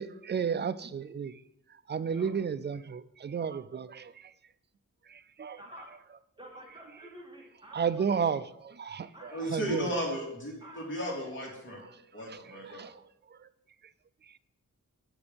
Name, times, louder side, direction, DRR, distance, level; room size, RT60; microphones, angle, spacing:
voice 1, 0.0-1.3 1.9-4.3 5.1-5.6 7.7-9.9 12.3-13.0 13.3-13.5 14.3-14.4, right 6 dB, 35° right, 15 dB, 0.4 m, -33 dB
voice 2, 5.6-5.9 6.4-8.0 9.1-9.9 10.6-11.2, right 1 dB, 15° right, -1 dB, 2.6 m, -49 dB
voice 3, 9.3-11.8 12.1-12.8, equal, 40° left, -2 dB, 2.9 m, -35 dB
8.0 x 7.0 x 5.2 m, 0.81 s
wide cardioid pair, 85°, 31 cm